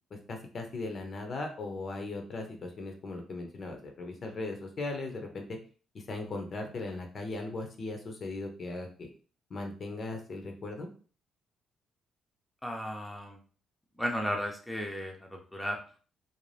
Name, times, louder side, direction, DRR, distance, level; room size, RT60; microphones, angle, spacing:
voice 1, 0.1-5.6 5.9-9.1 9.5-10.9, left 2 dB, 50° left, 4 dB, 0.6 m, -38 dB
voice 2, 12.6-13.4 14.0-16.0, equal, 5° left, 1 dB, 0.6 m, -35 dB
2.6 x 2.1 x 3.2 m, 0.40 s
cardioid pair, 90°, 0 cm